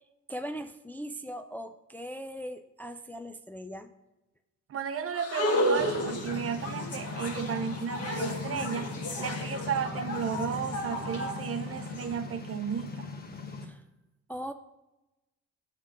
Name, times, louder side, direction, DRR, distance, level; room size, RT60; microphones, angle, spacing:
voice 1, 0.3-3.9 13.6-13.8 14.3-14.5, equal, 5° left, 7 dB, 0.4 m, -39 dB
voice 2, 4.7-8.9 9.2-13.1, right 7 dB, 50° right, 9 dB, 0.7 m, -34 dB
sound 1, 5.1-12.0, equal, 55° left, 1.6 m, -33 dB
sound 2, 5.8-13.7, left 3 dB, 30° left, 1.0 m, -39 dB
7.2 x 3.8 x 6.3 m, 1.0 s
cardioid pair, 90°, 30 cm